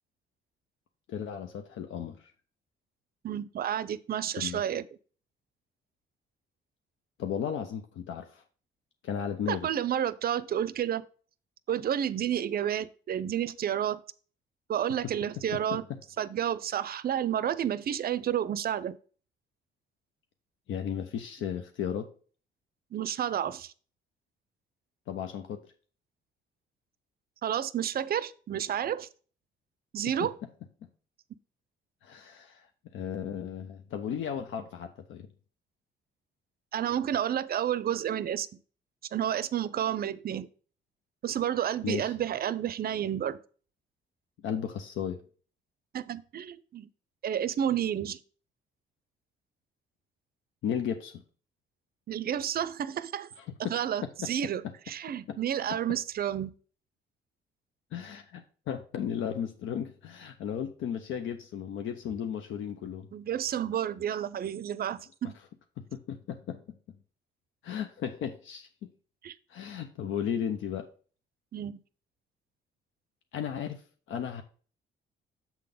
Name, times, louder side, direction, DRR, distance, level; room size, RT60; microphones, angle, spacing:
voice 1, 1.1-2.3 4.4-4.6 7.2-8.4 9.0-9.7 15.5-15.8 20.7-22.1 25.1-25.6 30.2-30.3 32.0-32.7 32.9-35.3 41.8-42.1 44.4-45.2 50.6-51.1 53.6-53.7 54.2-54.3 54.6-54.7 55.3-55.4 57.9-63.1 66.1-66.8 67.6-68.9 69.5-70.9 73.3-73.8 74.1-74.4, left 8 dB, 75° left, 0.7 m, -35 dB
voice 2, 3.2-4.9 9.5-11.0 11.7-14.0 14.7-15.8 16.2-19.0 22.9-23.7 27.4-29.1 29.9-30.4 36.7-38.5 39.1-40.5 41.2-43.4 45.9-46.9 47.2-48.2 52.1-53.3 53.7-56.5 63.1-65.4 69.2-69.4 71.5-71.8, right 10 dB, 50° right, 0.5 m, -30 dB
7.2 x 3.8 x 5.1 m
cardioid pair, 90°, 20 cm